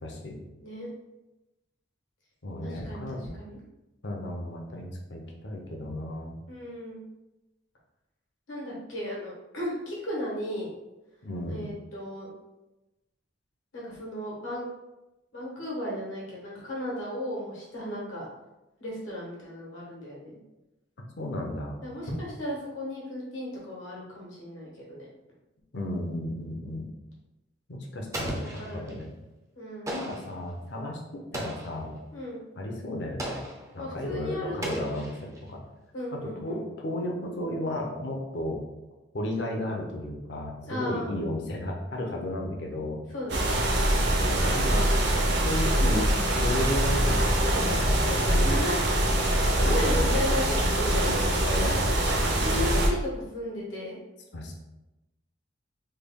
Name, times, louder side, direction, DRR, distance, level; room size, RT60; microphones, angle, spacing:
voice 1, 0.0-0.4 2.4-3.2 4.0-6.3 11.2-11.6 21.2-21.8 25.7-26.9 27.7-29.1 29.9-31.9 32.6-33.4 33.7-35.6 36.1-38.6 39.1-43.0 44.2-44.9 45.4-48.6 49.6-50.4 51.0-52.8 54.3-54.5, left 1 dB, 60° left, 0 dB, 0.6 m, -34 dB
voice 2, 2.6-3.6 6.5-7.0 8.5-10.7 11.5-12.3 13.7-14.6 15.3-18.3 18.8-20.4 21.8-25.1 28.2-29.0 29.5-30.0 32.1-32.4 33.8-35.0 35.9-36.6 40.6-41.1 43.1-43.5 48.2-48.9 49.6-51.6 52.4-54.0, left 1 dB, 80° left, -4 dB, 1.2 m, -35 dB
Explosion, 28.1-29.0 29.9-30.4 31.3-31.9 33.2-33.7 34.6-35.5, right 1 dB, 15° right, 0.4 m, -36 dB
sound 1, 43.3-52.9, right 1 dB, 55° right, 0.6 m, -24 dB
3.3 x 2.2 x 3.5 m, 1.0 s
head